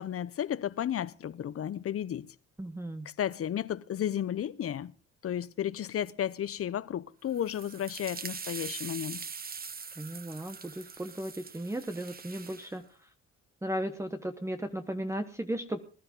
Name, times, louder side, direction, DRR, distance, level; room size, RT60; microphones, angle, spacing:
voice 1, 0.0-2.3 3.2-4.9 5.2-9.2, left 10 dB, 50° left, 0.7 m, -33 dB
voice 2, 2.6-3.1 10.0-12.8 13.6-15.8, right 1 dB, 10° right, 1.1 m, -35 dB
sound 1, 7.3-12.7, right 5 dB, 30° right, 1.1 m, -43 dB
20.0 x 11.5 x 3.7 m
cardioid pair, 90°, 30 cm